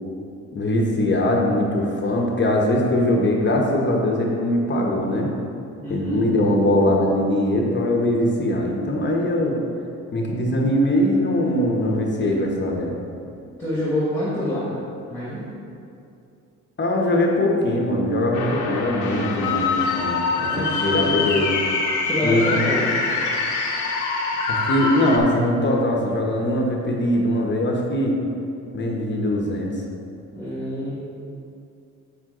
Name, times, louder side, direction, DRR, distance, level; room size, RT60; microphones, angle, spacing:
voice 1, 0.5-5.3 5.9-9.6 10.1-13.0 16.8-21.5 22.2-22.5 24.5-28.2 28.7-29.7, left 1 dB, 35° left, -1 dB, 1.2 m, -21 dB
voice 2, 5.8-6.3 13.6-14.7 15.1-15.5 20.5-21.2 22.0-23.0 30.3-31.0, left 1 dB, 10° left, -8 dB, 1.9 m, -27 dB
sound 1, 18.3-25.2, left 4 dB, 90° left, 1.1 m, -24 dB
7.5 x 6.3 x 3.8 m, 2.6 s
cardioid pair, 90°, 30 cm